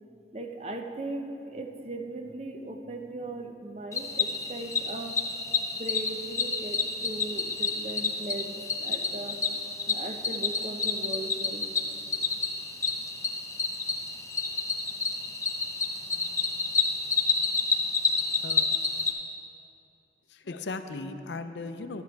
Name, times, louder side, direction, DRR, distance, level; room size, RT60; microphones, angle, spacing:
voice 1, 0.3-5.1 5.7-9.4 9.9-11.6, right 2 dB, 35° right, 4 dB, 0.7 m, -38 dB
Cricket, 3.9-19.1, left 4 dB, 15° left, 0.7 m, -29 dB
voice 2, 20.3-22.0, left 3 dB, 90° left, 9 dB, 0.6 m, -37 dB
12.0 x 8.6 x 4.6 m, 3.0 s
head